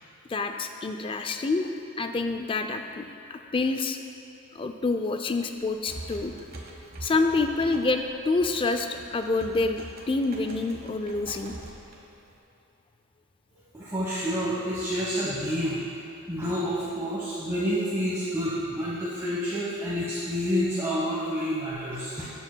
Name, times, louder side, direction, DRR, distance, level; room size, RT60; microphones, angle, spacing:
voice 1, 0.3-4.0 4.6-6.3 6.8-11.6, left 3 dB, 25° left, 6 dB, 0.3 m, -27 dB
sound 1, 5.5-12.4, right 2 dB, 45° right, 1.0 m, -44 dB
voice 2, 13.7-15.8 16.3-22.3, equal, 15° right, -9 dB, 1.1 m, -28 dB
12.0 x 7.1 x 2.2 m, 2.9 s
head